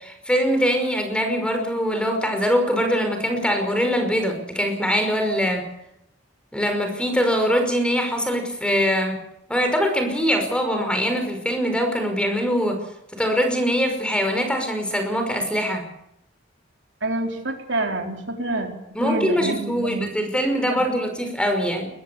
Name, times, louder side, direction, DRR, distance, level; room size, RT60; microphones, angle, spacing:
voice 1, 0.0-5.7 6.5-9.2 9.5-12.8 13.1-15.9 18.9-21.9, equal, 5° left, 6 dB, 5.4 m, -23 dB
voice 2, 17.0-18.7 19.0-20.1 20.7-20.9, right 2 dB, 70° right, 3 dB, 4.0 m, -27 dB
21.5 x 21.0 x 7.1 m, 0.78 s
head